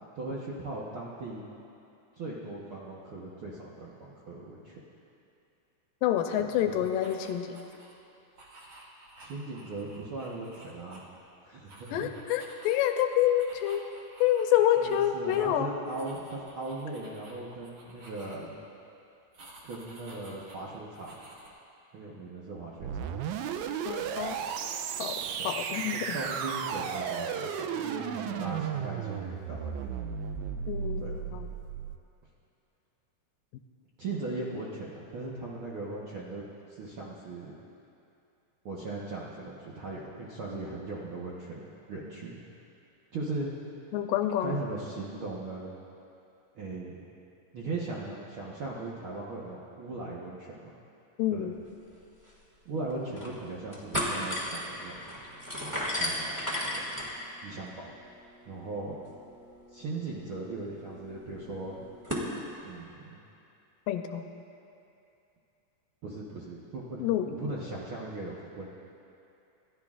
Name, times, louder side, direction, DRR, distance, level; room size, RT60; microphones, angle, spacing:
voice 1, 0.1-1.4 2.2-4.8 6.6-6.7 9.2-11.1 11.4-12.1 14.8-18.5 19.6-21.1 21.9-23.1 25.4-25.8 26.1-30.0 31.0-31.2 34.0-36.4 36.7-37.6 38.6-42.4 43.1-43.5 44.4-45.8 46.5-47.0 47.5-50.7 51.3-51.5 52.6-54.9 55.9-56.9 57.4-57.7 58.5-59.0 59.7-61.9 62.6-63.2 66.0-68.7, right 2 dB, 60° right, -6 dB, 1.4 m, -38 dB
voice 2, 6.0-7.6 11.9-13.8 14.2-15.7 23.9-24.4 25.0-26.2 30.7-31.5 43.9-44.6 51.2-51.6 63.9-64.2 67.0-67.4, left 11 dB, 85° left, 6 dB, 2.3 m, -28 dB
sound 1, 6.7-7.9 8.3-11.3 11.6-15.1 15.3-15.5 15.8-18.6 19.3-21.5, right 2 dB, 45° right, 2.0 m, -53 dB
sound 2, 22.8-32.0, right 7 dB, 85° right, 1.7 m, -34 dB
sound 3, 51.9-52.0 52.3-52.4 52.9-53.4 53.7-62.3, equal, 10° right, 1.1 m, -36 dB
28.0 x 13.0 x 2.5 m, 2.7 s
omnidirectional pair, 4.0 m